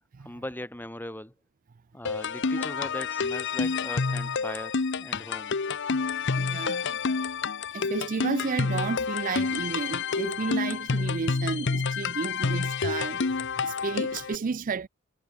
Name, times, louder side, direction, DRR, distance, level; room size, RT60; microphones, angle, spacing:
voice 1, 0.2-1.3 1.9-5.5, left 1 dB, 10° left, 1.6 m, -39 dB
sound 1, 2.1-14.4, left 4 dB, 55° left, 0.8 m, -29 dB
voice 2, 6.4-7.0 7.7-14.9, right 5 dB, 40° right, 0.4 m, -32 dB
head